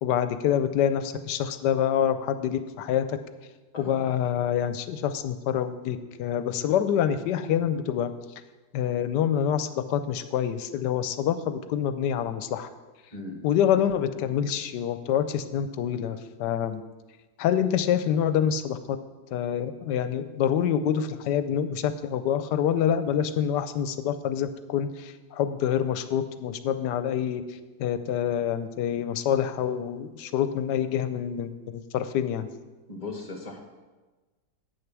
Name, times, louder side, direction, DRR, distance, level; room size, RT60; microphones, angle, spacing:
voice 1, 0.0-3.2 3.8-8.1 8.7-12.7 13.4-16.8 17.4-19.0 19.3-27.4 27.8-32.5, left 9 dB, 80° left, 11 dB, 1.2 m, -26 dB
voice 2, 13.1-13.4 32.9-33.6, left 3 dB, 25° left, 2 dB, 1.5 m, -37 dB
8.9 x 6.5 x 6.0 m, 1.2 s
omnidirectional pair, 1.8 m